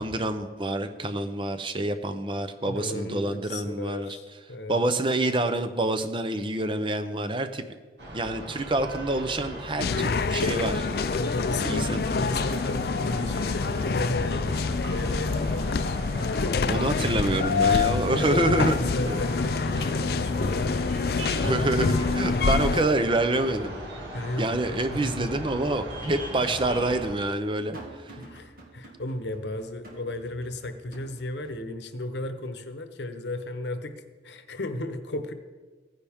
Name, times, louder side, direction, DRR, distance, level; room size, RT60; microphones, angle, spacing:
voice 1, 0.0-4.2 4.7-7.6 8.1-10.9 11.6-12.2 16.7-18.8 19.1-19.2 19.8-19.9 21.4-23.8 24.4-28.2, right 2 dB, 30° right, 9 dB, 0.7 m, -27 dB
voice 2, 2.7-4.8 11.2-16.8 18.1-20.8 24.1-25.3 28.2-35.3, left 1 dB, 80° left, 8 dB, 1.0 m, -34 dB
sound 1, 8.0-27.1, right 1 dB, 85° right, 2.4 m, -38 dB
sound 2, 9.8-22.8, left 4 dB, 60° left, 0.4 m, -26 dB
sound 3, 27.7-31.6, right 1 dB, 55° right, 2.0 m, -52 dB
16.0 x 10.0 x 3.6 m, 1.4 s
head